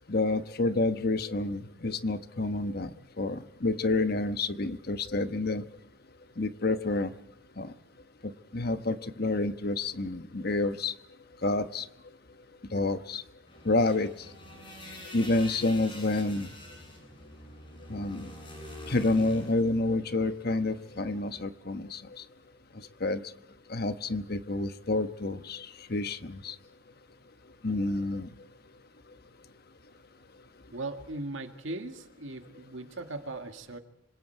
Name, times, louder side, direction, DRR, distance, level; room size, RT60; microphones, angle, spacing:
voice 1, 0.1-2.9 3.2-5.6 6.4-7.1 7.6-7.7 8.5-10.9 11.4-11.9 12.7-13.2 13.6-14.1 15.1-16.5 17.9-18.3 18.9-22.0 23.0-23.2 23.7-26.5 27.6-28.3, left 2 dB, 50° left, 10 dB, 1.2 m, -29 dB
sound 1, 13.5-21.5, left 1 dB, 25° left, 7.5 m, -47 dB
voice 2, 30.7-33.8, right 2 dB, 70° right, 6 dB, 1.9 m, -38 dB
26.0 x 25.5 x 4.6 m, 0.77 s
head